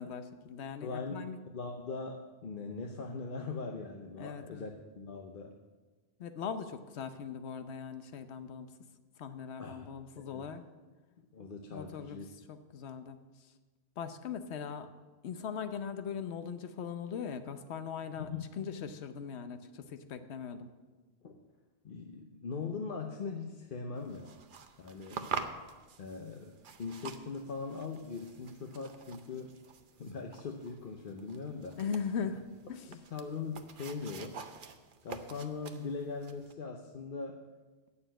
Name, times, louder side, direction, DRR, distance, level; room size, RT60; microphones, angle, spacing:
voice 1, 0.0-1.4 4.2-4.7 6.2-8.7 9.2-10.6 11.7-12.2 12.5-13.5 14.0-14.9 15.2-18.3 18.6-20.7 31.7-32.4 32.7-32.9, left 6 dB, 80° left, 10 dB, 1.0 m, -40 dB
voice 2, 0.8-1.2 1.5-5.5 9.6-10.5 11.2-12.2 18.2-18.4 21.2-21.4 21.8-24.4 24.8-25.3 26.0-29.6 30.0-31.8 32.9-34.4 35.0-37.4, left 4 dB, 55° left, 3 dB, 0.9 m, -41 dB
sound 1, 24.0-36.5, right 5 dB, 55° right, 0.8 m, -46 dB
9.2 x 6.9 x 8.9 m, 1.3 s
omnidirectional pair, 1.1 m